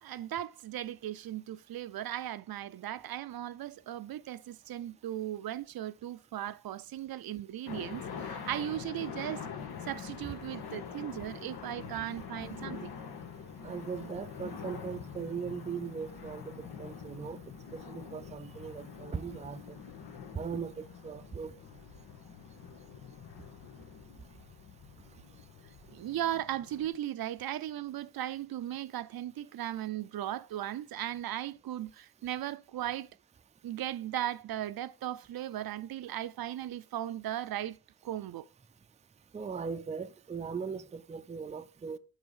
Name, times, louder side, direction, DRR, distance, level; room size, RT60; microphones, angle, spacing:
voice 1, 0.0-9.5 9.9-12.9 25.9-33.1 33.6-37.8 38.0-38.5, right 12 dB, 70° right, 0.5 m, -37 dB
sound 1, 7.7-26.9, left 6 dB, 90° left, 1.6 m, -45 dB
voice 2, 13.6-17.4 17.7-19.8 20.3-21.5 39.3-42.0, right 6 dB, 20° right, 0.4 m, -39 dB
8.0 x 5.0 x 5.4 m
wide cardioid pair, 140°, 37 cm